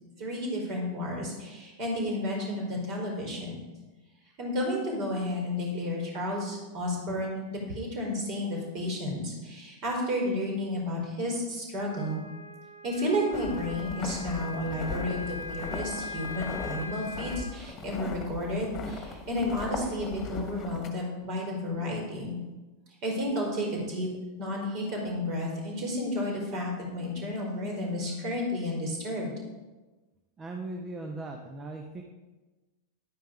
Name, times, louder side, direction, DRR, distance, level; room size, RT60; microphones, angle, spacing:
voice 1, 0.2-3.6 4.4-12.2 12.8-22.4 23.0-24.1 24.4-29.3, left 1 dB, 40° right, -1 dB, 4.4 m, -32 dB
Wind instrument woodwind instrument, 11.9-17.6, left 4 dB, 80° left, 1.0 m, -41 dB
sound 1, 13.3-20.9, left 4 dB, 30° left, 1.6 m, -39 dB
voice 2, 30.4-32.0, right 2 dB, 20° right, 3 dB, 1.0 m, -38 dB
11.0 x 9.3 x 5.1 m, 1.2 s
figure-of-eight pair, 90°, 0 cm